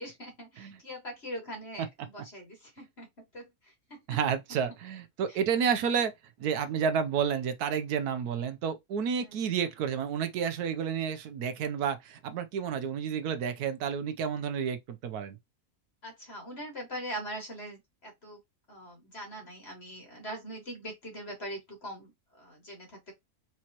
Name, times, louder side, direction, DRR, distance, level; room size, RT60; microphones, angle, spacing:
voice 1, 0.0-4.2 5.3-5.8 9.2-9.5 14.4-14.5 16.0-18.4 18.7-23.1, equal, 40° left, 2.3 m, -42 dB
voice 2, 4.1-6.1 6.4-15.4, right 7 dB, 80° right, 1.2 m, -30 dB
4.5 x 3.6 x 2.9 m
omnidirectional pair, 1.7 m